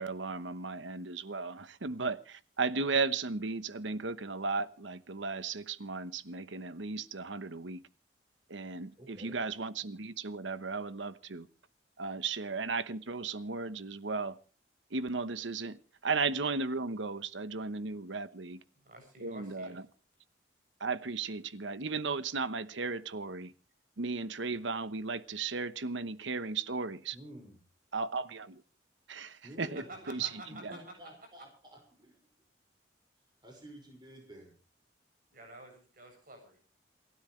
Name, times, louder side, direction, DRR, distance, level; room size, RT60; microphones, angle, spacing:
voice 1, 0.0-7.8 8.5-11.5 12.0-14.4 14.9-18.6 19.2-19.8 20.8-23.5 24.0-27.2 27.9-28.6 29.1-29.8 30.1-30.3 30.6-30.7, right 4 dB, 85° right, 1.0 m, -35 dB
voice 2, 9.0-9.4 27.1-27.6 29.4-30.0 30.4-32.2 33.4-34.5, right 1 dB, 25° right, 5.6 m, -51 dB
voice 3, 18.8-19.8 29.6-30.8 35.3-36.6, right 1 dB, 50° right, 7.7 m, -50 dB
28.5 x 12.5 x 3.2 m
head